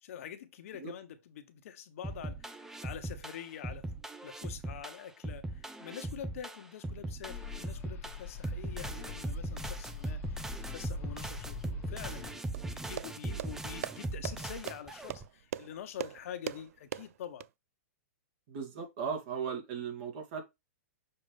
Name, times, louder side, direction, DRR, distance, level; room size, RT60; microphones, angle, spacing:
voice 1, 0.0-3.9 4.2-17.5, left 9 dB, 60° left, 1.2 m, -46 dB
sound 1, 2.0-15.2, right 2 dB, 5° right, 0.5 m, -39 dB
sound 2, 7.2-12.3, left 7 dB, 25° left, 1.3 m, -44 dB
sound 3, 12.5-17.5, right 11 dB, 60° right, 0.4 m, -41 dB
voice 2, 18.5-20.4, right 6 dB, 45° right, 2.5 m, -37 dB
6.9 x 5.1 x 3.4 m
hypercardioid pair, 155°, 9 cm